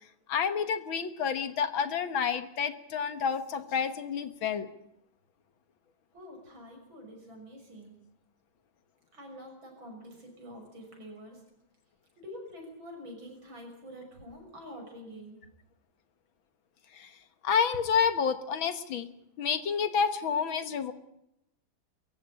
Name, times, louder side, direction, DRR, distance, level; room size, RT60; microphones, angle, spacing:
voice 1, 0.3-4.7 16.9-17.1 17.4-19.1 19.4-20.9, left 6 dB, 75° left, 10 dB, 2.1 m, -29 dB
voice 2, 6.1-8.0 9.1-11.4 12.2-15.4, equal, 70° right, 2 dB, 7.2 m, -46 dB
23.5 x 14.5 x 8.8 m, 0.83 s
omnidirectional pair, 2.2 m